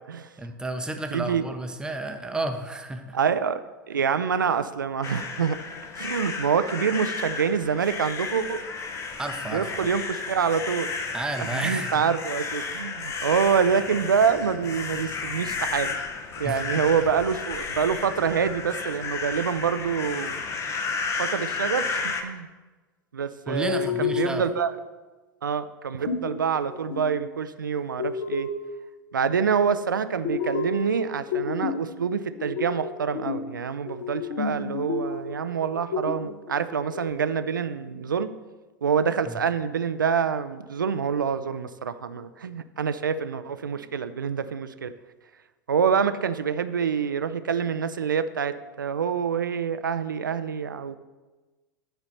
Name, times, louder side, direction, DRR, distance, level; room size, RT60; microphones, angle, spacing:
voice 1, 0.4-3.2 9.2-9.9 11.1-12.0 16.4-16.6 23.5-24.4 39.3-39.4, right 2 dB, 5° right, 6 dB, 0.7 m, -32 dB
voice 2, 1.1-1.5 3.1-3.6 3.9-5.6 6.0-8.6 9.5-10.9 11.4-16.0 16.4-20.4 21.2-22.5 23.1-24.7 25.4-28.5 29.1-38.3 38.8-44.9 45.7-51.0, right 6 dB, 75° right, 12 dB, 0.4 m, -26 dB
sound 1, 5.0-22.2, left 4 dB, 25° left, 0.8 m, -33 dB
sound 2, 23.6-24.7 26.1-27.2 27.7-28.7 30.2-31.9 32.4-33.5 33.9-35.4 35.6-37.1, left 5 dB, 50° left, 1.0 m, -31 dB
9.1 x 4.1 x 5.5 m, 1.2 s
figure-of-eight pair, 85°, 11 cm